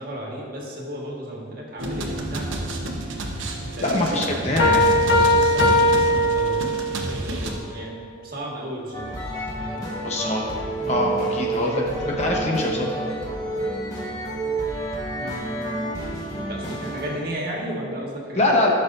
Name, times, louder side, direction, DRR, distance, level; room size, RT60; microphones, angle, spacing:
voice 1, 0.0-2.7 3.5-4.8 5.3-9.1 9.6-10.1 10.8-11.0 15.2-15.9 16.5-18.6, equal, 50° right, -3 dB, 1.7 m, -34 dB
sound 1, 1.8-7.5, right 1 dB, 90° right, 1.1 m, -30 dB
voice 2, 3.8-4.9 10.0-10.5 10.9-12.9 18.3-18.7, left 1 dB, 35° left, -1 dB, 1.0 m, -23 dB
sound 2, 4.6-7.1, left 1 dB, 75° left, 1.2 m, -19 dB
sound 3, 8.9-17.3, right 2 dB, 20° left, 1.4 m, -29 dB
15.0 x 6.6 x 2.7 m, 2.1 s
head